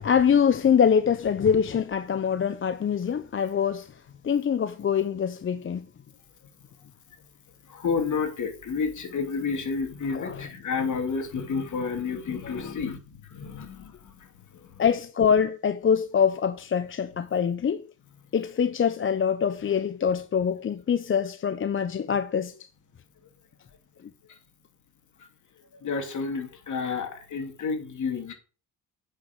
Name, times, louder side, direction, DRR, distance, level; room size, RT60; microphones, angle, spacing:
voice 1, 0.0-3.9 4.2-5.9 10.1-10.5 12.4-12.5 14.8-17.9 18.3-22.5, left 7 dB, 35° left, 0.7 m, -24 dB
voice 2, 7.7-13.0 13.3-13.9 25.8-28.3, left 5 dB, 55° left, 2.8 m, -30 dB
8.4 x 5.9 x 6.1 m
cardioid pair, 85°, 35 cm